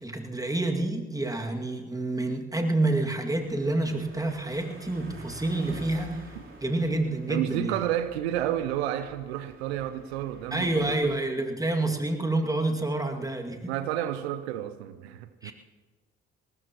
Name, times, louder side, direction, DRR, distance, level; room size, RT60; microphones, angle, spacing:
voice 1, 0.0-6.3 6.6-7.7 10.5-13.7 15.4-15.5, right 2 dB, 10° right, 2 dB, 2.3 m, -28 dB
sound 1, 3.3-11.2, right 1 dB, 40° right, 3.7 m, -48 dB
voice 2, 7.3-11.2 13.7-15.5, right 12 dB, 85° right, 12 dB, 0.6 m, -31 dB
21.0 x 18.5 x 3.1 m, 1.3 s
hypercardioid pair, 45°, 32 cm